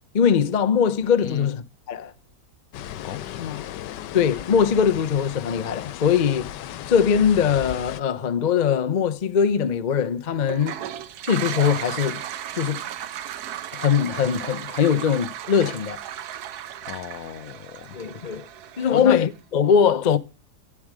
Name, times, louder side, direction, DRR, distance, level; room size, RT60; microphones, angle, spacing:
voice 1, 0.1-2.1 4.1-6.5 6.9-10.8 11.2-12.2 12.5-12.8 13.7-16.0 17.9-18.5 18.8-20.2, left 7 dB, 40° left, 0.6 m, -21 dB
sound 1, 2.7-8.0, left 12 dB, 90° left, 1.3 m, -36 dB
voice 2, 3.0-3.6 16.9-18.0 18.9-19.2, left 10 dB, 65° left, 1.0 m, -33 dB
Toilet flush, 10.4-19.3, right 11 dB, 70° right, 1.3 m, -35 dB
11.0 x 8.5 x 4.8 m
omnidirectional pair, 1.8 m